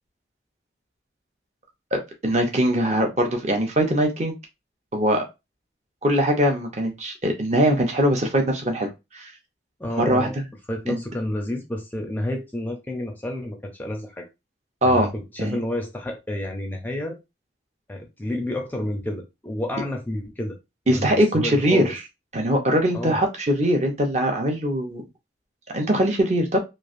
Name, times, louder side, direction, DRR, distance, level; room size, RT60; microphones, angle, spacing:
voice 1, 1.9-4.3 4.9-5.2 6.0-9.3 9.9-10.3 10.9-11.0 14.8-15.1 15.4-15.6 20.9-22.0 22.3-25.0 25.7-26.6, equal, 40° right, 0.7 m, -22 dB
voice 2, 9.8-10.4 10.7-14.3 14.8-17.2 17.9-20.6 20.9-22.0 22.9-23.2, left 1 dB, 10° left, 0.4 m, -30 dB
3.1 x 2.4 x 2.5 m
head